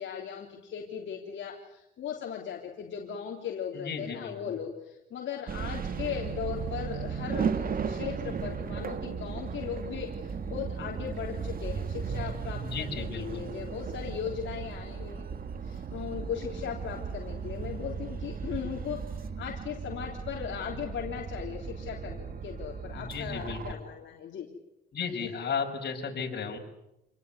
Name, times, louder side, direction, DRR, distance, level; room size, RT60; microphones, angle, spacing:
voice 1, 0.0-15.3 15.6-24.5, left 8 dB, 75° left, 0 dB, 3.5 m, -38 dB
voice 2, 3.7-4.5 12.6-13.5 22.9-23.8 24.9-26.6, left 5 dB, 60° left, 2 dB, 6.3 m, -35 dB
sound 1, 5.5-23.7, right 6 dB, 50° right, 1.7 m, -36 dB
28.0 x 19.0 x 9.5 m, 0.88 s
cardioid pair, 105°, 19 cm